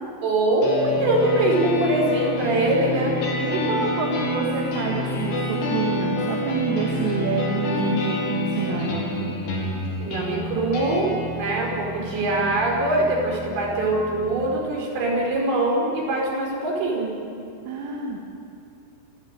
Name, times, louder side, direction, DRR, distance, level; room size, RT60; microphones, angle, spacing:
voice 1, 0.2-3.2 10.0-17.1, right 2 dB, 60° right, -1 dB, 7.3 m, -23 dB
sound 1, 0.6-14.6, left 1 dB, 70° left, 6.7 m, -28 dB
voice 2, 3.4-9.4 12.0-12.2 17.7-18.2, right 4 dB, 80° right, -1 dB, 4.7 m, -27 dB
29.0 x 14.0 x 9.4 m, 2.7 s
omnidirectional pair, 5.7 m